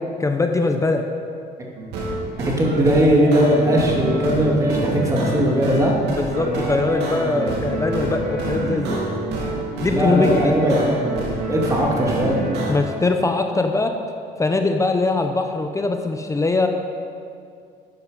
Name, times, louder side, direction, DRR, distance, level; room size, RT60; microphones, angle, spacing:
voice 1, 0.2-1.0 6.1-9.0 9.8-10.6 12.7-13.9 14.4-16.7, left 3 dB, 20° left, 5 dB, 0.8 m, -21 dB
sound 1, 1.8-12.7, right 2 dB, 80° right, 2.9 m, -26 dB
voice 2, 2.4-5.9 9.9-11.0 11.5-12.4, equal, 20° right, -2 dB, 2.7 m, -19 dB
13.0 x 9.2 x 5.4 m, 2.3 s
cardioid pair, 110°, 17 cm